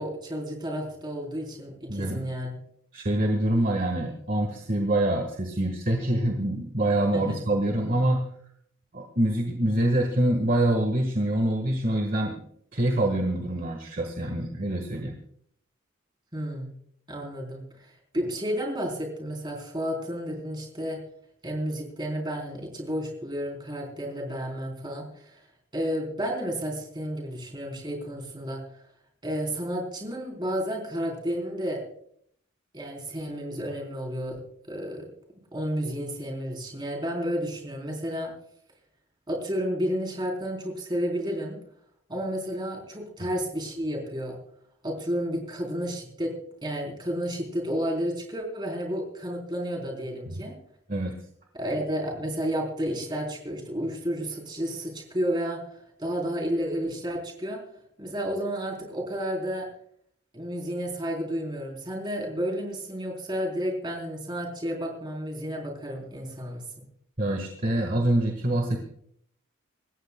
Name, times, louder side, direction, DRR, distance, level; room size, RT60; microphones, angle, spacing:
voice 1, 0.0-2.6 7.1-7.4 16.3-16.7 17.1-21.0 21.4-25.4 25.7-28.6 29.2-31.8 32.7-34.4 34.7-35.1 35.5-38.3 39.3-41.6 42.1-44.4 44.8-46.3 46.6-50.5 51.5-55.6 56.0-57.6 58.0-59.7 60.3-66.8, equal, 20° right, 1 dB, 3.7 m, -31 dB
voice 2, 1.9-2.2 2.9-8.2 8.9-12.3 12.7-15.2 50.3-50.4 50.9-51.1 67.2-68.8, right 1 dB, 40° right, 3 dB, 1.5 m, -25 dB
26.5 x 14.5 x 2.2 m, 0.66 s
head